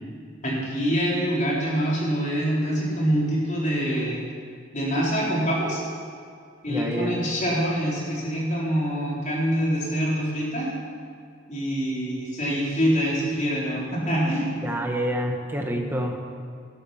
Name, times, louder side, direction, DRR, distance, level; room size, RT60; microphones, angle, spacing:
voice 1, 0.4-4.2 4.7-5.8 6.6-10.7 11.5-14.5, equal, 35° left, -5 dB, 4.2 m, -25 dB
voice 2, 6.7-7.1 14.6-16.1, equal, 10° right, 1 dB, 1.5 m, -27 dB
15.0 x 12.5 x 5.9 m, 2.2 s
head